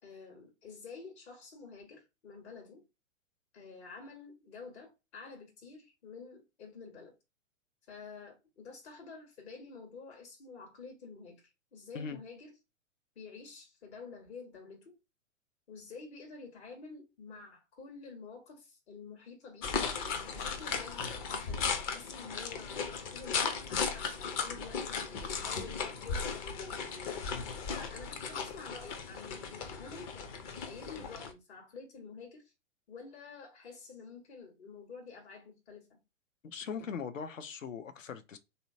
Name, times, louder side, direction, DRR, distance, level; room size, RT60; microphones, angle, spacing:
voice 1, 0.0-2.8 3.5-7.1 7.9-11.4 11.7-12.5 13.1-15.0 15.7-19.7 20.3-26.8 27.7-32.5 32.9-36.0, left 4 dB, 60° left, 1.4 m, -49 dB
sound 1, 19.6-31.3, left 5 dB, 30° left, 0.5 m, -36 dB
voice 2, 36.4-38.4, left 6 dB, 80° left, 0.7 m, -40 dB
3.2 x 2.7 x 2.7 m
figure-of-eight pair, 115°, 38 cm